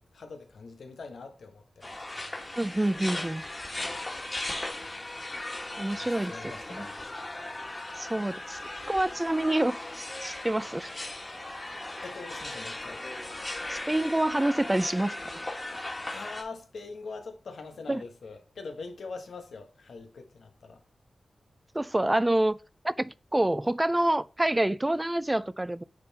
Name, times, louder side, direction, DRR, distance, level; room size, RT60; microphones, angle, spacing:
voice 1, 0.1-2.4 4.8-4.9 6.0-7.3 12.0-13.0 16.1-20.8, left 4 dB, 85° left, 1.4 m, -43 dB
sound 1, 1.8-16.4, left 2 dB, 25° left, 2.0 m, -38 dB
voice 2, 2.6-3.4 5.8-6.3 6.7-6.9 8.0-8.6 8.9-10.9 13.7-15.4 17.9-18.0 21.7-22.6 22.8-25.8, right 1 dB, 15° right, 0.4 m, -27 dB
Shout, 3.5-15.6, left 2 dB, 45° left, 2.7 m, -52 dB
9.6 x 3.9 x 4.2 m
wide cardioid pair, 90°, 0 cm